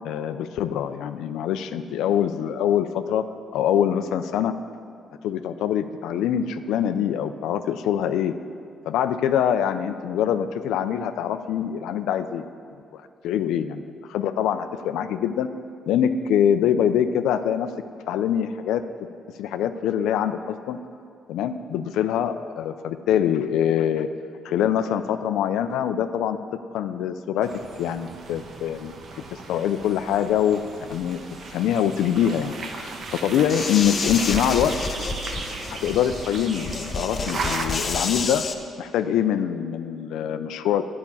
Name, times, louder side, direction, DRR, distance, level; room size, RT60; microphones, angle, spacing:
voice 1, 0.0-3.2 3.5-4.5 5.2-8.3 8.8-12.4 13.2-15.5 15.9-17.7 18.1-18.8 19.4-20.8 21.3-24.1 24.4-26.4 26.7-27.5 27.8-28.9 29.5-30.6 30.9-31.2 31.5-34.7 35.7-38.4 38.8-40.8, left 9 dB, 90° left, 10 dB, 0.4 m, -24 dB
sound 1, 27.4-37.6, right 4 dB, 55° right, 1.1 m, -36 dB
sound 2, 33.5-38.5, left 3 dB, 40° left, 0.9 m, -29 dB
10.5 x 5.9 x 8.4 m, 2.3 s
cardioid pair, 90°, 0 cm